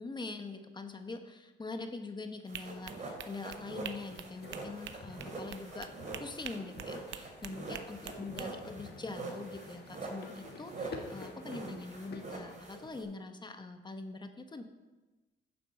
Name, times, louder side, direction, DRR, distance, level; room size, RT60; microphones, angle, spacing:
voice 1, 0.0-5.9 6.2-14.6, left 3 dB, 20° left, 6 dB, 1.2 m, -43 dB
sound 1, 2.5-13.0, right 3 dB, 40° right, 3.5 m, -44 dB
sound 2, 2.5-8.5, right 9 dB, 70° right, 0.7 m, -46 dB
sound 3, 3.8-12.6, left 4 dB, 55° left, 1.6 m, -51 dB
9.4 x 7.6 x 6.5 m, 1.2 s
cardioid pair, 90°, 20 cm